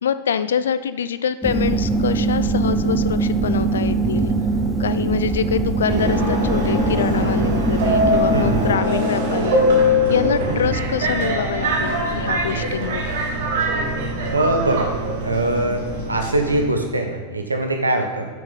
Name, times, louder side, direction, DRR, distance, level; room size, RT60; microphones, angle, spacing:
voice 1, 0.0-4.3 4.8-9.6 10.1-13.1, left 7 dB, 65° left, 13 dB, 0.3 m, -25 dB
sound 1, 1.4-8.8, right 3 dB, 5° right, 0.7 m, -22 dB
Subway metro underground, 5.9-16.6, equal, 55° right, 1.4 m, -22 dB
voice 2, 8.3-8.7 14.3-14.9 15.2-18.3, right 2 dB, 80° right, 4 dB, 0.9 m, -22 dB
6.8 x 6.5 x 3.9 m, 1.5 s
figure-of-eight pair, 90°, 0 cm